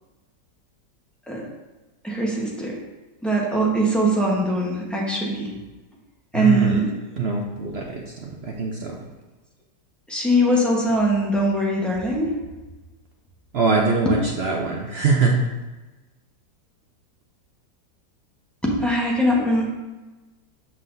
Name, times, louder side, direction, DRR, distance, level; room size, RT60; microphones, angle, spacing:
voice 1, 2.0-2.8 3.2-5.6 6.3-6.9 10.1-12.3 14.0-14.1 18.6-19.7, right 1 dB, ahead, -3 dB, 0.7 m, -21 dB
voice 2, 6.3-6.8 7.2-9.0 13.5-15.4, right 4 dB, 65° right, 0 dB, 0.6 m, -23 dB
7.5 x 5.8 x 2.6 m, 1.1 s
omnidirectional pair, 1.9 m